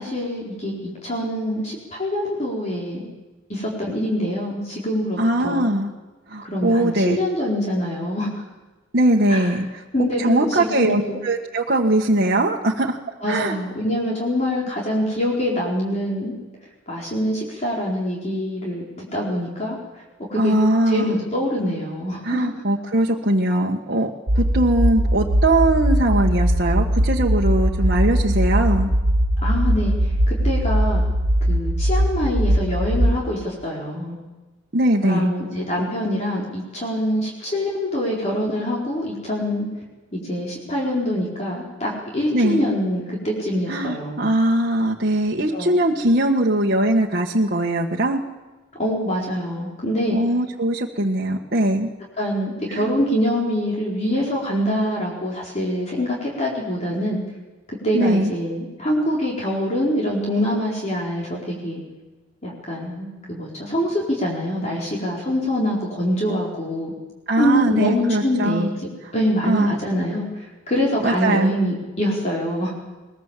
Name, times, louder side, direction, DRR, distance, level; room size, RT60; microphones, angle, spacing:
voice 1, 0.0-3.1 3.5-5.7 6.4-8.3 9.3-9.5 9.9-11.2 13.2-16.3 16.9-19.8 20.3-20.5 20.9-22.5 29.4-31.0 31.5-34.2 35.0-39.7 40.1-44.3 45.5-45.7 48.8-50.2 52.2-57.2 57.8-61.8 62.4-66.9 67.3-68.7 69.1-72.7, equal, 35° left, -4 dB, 4.6 m, -25 dB
voice 2, 5.2-5.9 6.3-7.2 8.9-9.8 10.2-13.0 13.3-13.6 20.3-21.2 22.2-28.9 34.7-35.3 42.3-42.6 43.7-48.2 50.1-51.9 52.7-52.9 57.9-58.3 67.3-68.7 69.4-69.7 71.0-71.6, right 1 dB, 50° right, -2 dB, 1.6 m, -20 dB
sound 1, 24.3-33.1, equal, 90° right, 1.5 m, -20 dB
22.0 x 20.5 x 7.5 m, 1.2 s
head